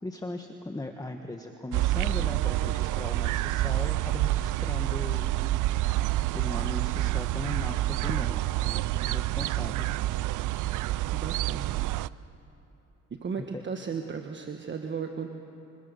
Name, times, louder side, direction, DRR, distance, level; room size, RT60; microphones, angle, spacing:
voice 1, 0.0-5.3 6.3-9.9 13.4-13.6, left 2 dB, 10° left, 4 dB, 1.3 m, -38 dB
sound 1, 1.7-12.1, right 16 dB, 80° right, 0.5 m, -28 dB
voice 2, 11.1-11.7 13.1-15.3, right 6 dB, 40° right, 4 dB, 1.4 m, -35 dB
25.0 x 21.0 x 6.9 m, 2.8 s
cardioid pair, 90°, 30 cm